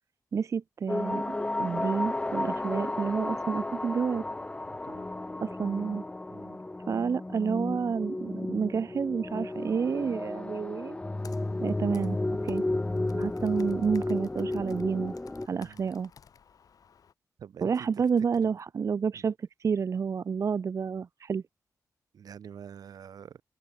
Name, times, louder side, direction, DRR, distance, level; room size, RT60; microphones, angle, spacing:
voice 1, 0.3-4.2 5.4-6.0 6.9-11.0 11.6-12.6 13.1-15.1 15.5-16.1 17.6-21.4, right 6 dB, 55° right, 0.6 m, -30 dB
sound 1, 0.9-15.5, left 2 dB, 15° left, 0.8 m, -33 dB
voice 2, 4.6-5.1 6.3-6.6 15.5-15.9 17.4-17.9 18.4-18.5 19.1-19.3 22.1-23.4, right 8 dB, 85° right, 4.2 m, -47 dB
Computer keyboard, 11.2-17.1, left 7 dB, 70° left, 2.6 m, -56 dB
cardioid pair, 90°, 6 cm